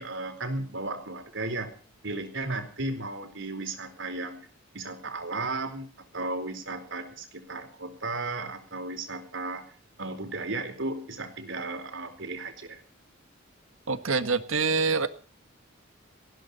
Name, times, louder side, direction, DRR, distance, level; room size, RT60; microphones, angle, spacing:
voice 1, 0.0-1.7 2.0-4.4 4.7-9.6 10.0-12.8, right 2 dB, 65° right, 8 dB, 4.3 m, -35 dB
voice 2, 13.9-15.1, right 4 dB, 90° right, 10 dB, 1.7 m, -25 dB
19.5 x 16.0 x 4.4 m, 0.42 s
head